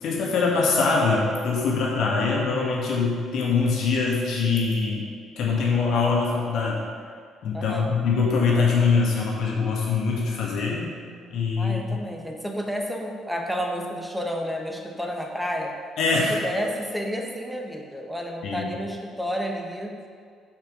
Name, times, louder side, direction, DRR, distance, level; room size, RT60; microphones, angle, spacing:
voice 1, 0.0-5.0 5.4-6.8 7.4-10.9 11.3-12.0 16.0-16.4 18.4-18.7, left 4 dB, 60° left, -3 dB, 1.9 m, -23 dB
voice 2, 7.5-7.9 11.6-15.7 16.1-20.0, equal, ahead, 1 dB, 1.4 m, -31 dB
8.0 x 5.8 x 5.2 m, 2.1 s
figure-of-eight pair, 45°, 0 cm